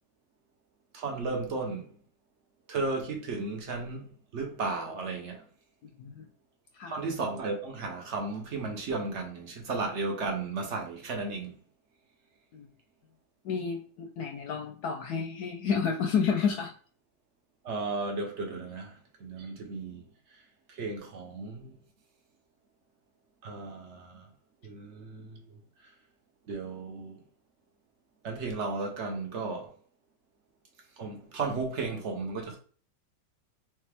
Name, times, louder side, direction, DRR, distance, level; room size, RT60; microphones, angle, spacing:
voice 1, 0.9-1.9 2.7-5.4 6.9-11.5 17.6-18.9 19.2-20.0 20.7-21.8 23.4-24.3 24.6-25.4 26.5-27.2 28.2-29.7 31.0-32.6, right 3 dB, 55° right, 0.9 m, -34 dB
voice 2, 13.4-16.7, left 6 dB, 70° left, 1.0 m, -30 dB
3.3 x 3.2 x 3.3 m
omnidirectional pair, 1.9 m